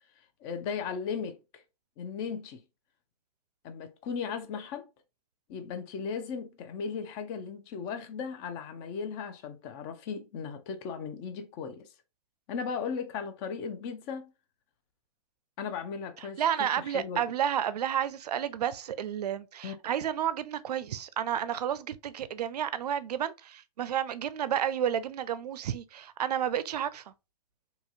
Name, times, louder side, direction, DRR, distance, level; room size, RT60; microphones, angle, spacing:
voice 1, 0.4-1.6 2.0-2.6 3.6-4.9 5.5-11.9 12.5-14.3 15.6-17.2 19.6-19.8, left 6 dB, 35° left, 0.6 m, -37 dB
voice 2, 16.4-27.0, right 9 dB, 85° right, 0.4 m, -31 dB
2.8 x 2.8 x 2.4 m
hypercardioid pair, 130°, 20 cm